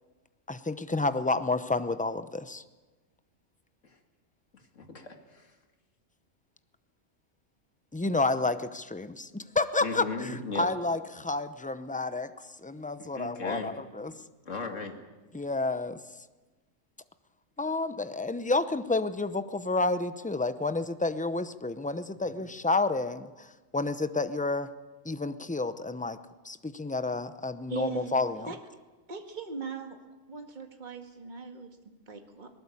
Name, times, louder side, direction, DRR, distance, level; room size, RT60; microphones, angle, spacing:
voice 1, 0.5-2.6 7.9-12.3 12.6-14.1 15.3-16.0 17.6-24.7 25.0-26.2 26.4-28.5, left 3 dB, 10° left, 12 dB, 0.5 m, -30 dB
voice 2, 4.8-5.5 9.8-10.7 13.0-13.8 14.5-15.0, left 4 dB, 75° left, 5 dB, 2.5 m, -36 dB
voice 3, 27.7-28.1 28.5-28.6 29.1-30.0 30.3-32.5, right 5 dB, 35° right, 5 dB, 2.0 m, -39 dB
20.0 x 19.0 x 8.4 m, 1.2 s
omnidirectional pair, 1.3 m